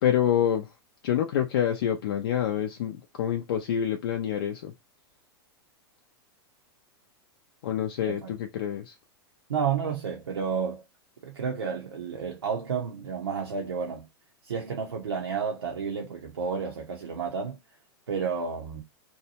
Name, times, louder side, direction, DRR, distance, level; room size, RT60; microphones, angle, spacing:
voice 1, 0.0-0.7 1.0-4.7 7.6-8.9, left 10 dB, 70° left, 0.5 m, -27 dB
voice 2, 8.0-8.3 9.5-10.8 11.2-14.1 14.4-17.6 18.1-18.8, right 6 dB, 90° right, 0.7 m, -31 dB
2.7 x 2.2 x 2.8 m
hypercardioid pair, 105°, 13 cm